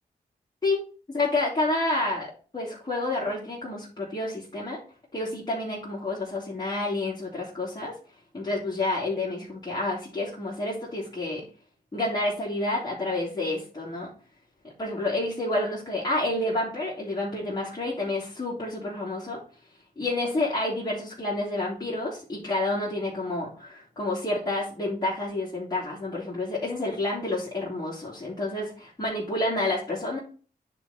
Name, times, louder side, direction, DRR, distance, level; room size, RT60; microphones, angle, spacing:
voice 1, 1.1-2.3 2.5-4.8 5.1-7.9 8.3-11.4 11.9-14.1 14.8-19.4 20.0-30.2, left 2 dB, 25° left, -7 dB, 3.0 m, -29 dB
9.7 x 4.2 x 4.3 m, 0.38 s
cardioid pair, 90°, 16 cm